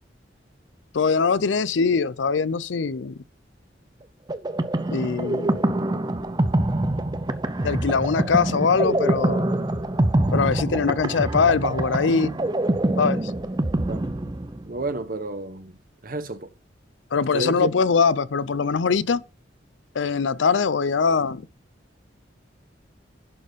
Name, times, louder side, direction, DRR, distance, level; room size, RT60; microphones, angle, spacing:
voice 1, 0.9-3.2 4.9-5.5 7.6-9.5 10.3-12.4 13.0-13.3 17.1-19.2 19.9-21.5, left 5 dB, 90° left, 0.5 m, -22 dB
sound 1, 4.3-14.8, right 1 dB, 25° right, 0.6 m, -25 dB
voice 2, 14.7-15.7 16.0-16.5 17.3-17.7, right 2 dB, 50° right, 1.0 m, -30 dB
11.0 x 4.3 x 5.2 m
head